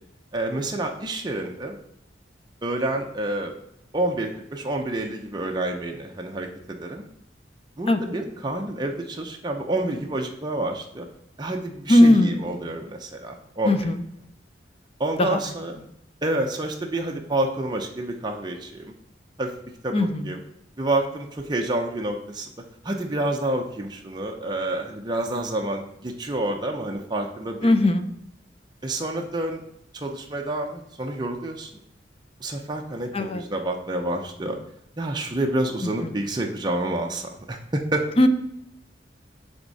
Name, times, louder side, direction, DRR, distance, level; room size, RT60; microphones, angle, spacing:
voice 1, 0.3-1.8 2.6-3.5 3.9-7.0 7.8-11.1 11.4-13.9 15.0-15.8 16.2-18.9 19.4-19.5 19.8-20.4 20.8-22.5 22.8-27.7 28.8-29.6 29.9-31.7 32.4-34.6 35.0-38.0, right 1 dB, 25° right, 1 dB, 0.6 m, -28 dB
voice 2, 11.9-12.4 13.7-14.0 15.2-15.4 19.9-20.1 27.6-28.1 33.1-33.4 38.2-38.3, left 1 dB, 35° left, 8 dB, 0.6 m, -18 dB
10.5 x 3.6 x 4.1 m, 0.79 s
head